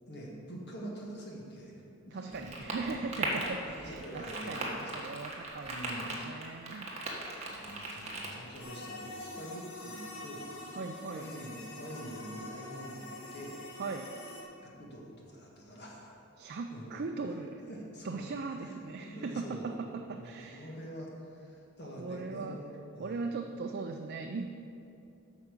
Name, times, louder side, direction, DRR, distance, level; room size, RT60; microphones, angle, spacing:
voice 1, 0.1-1.8 2.0-2.7 3.6-5.1 5.6-6.1 7.5-10.5 11.1-13.6 14.6-16.2 16.7-16.9 17.7-18.2 18.6-19.7 20.1-22.7 22.9-23.4, right 1 dB, 50° left, -2 dB, 1.7 m, -45 dB
voice 2, 2.1-6.9 7.7-8.1 10.7-11.3 13.8-14.1 16.4-17.6 18.0-20.7 21.8-22.6 23.0-24.5, right 4 dB, 50° right, 4 dB, 0.4 m, -39 dB
sound 1, 2.3-8.6, right 2 dB, 30° right, 1.4 m, -39 dB
sound 2, 8.6-14.4, left 2 dB, 75° left, 1.5 m, -45 dB
8.4 x 5.7 x 6.7 m, 2.6 s
head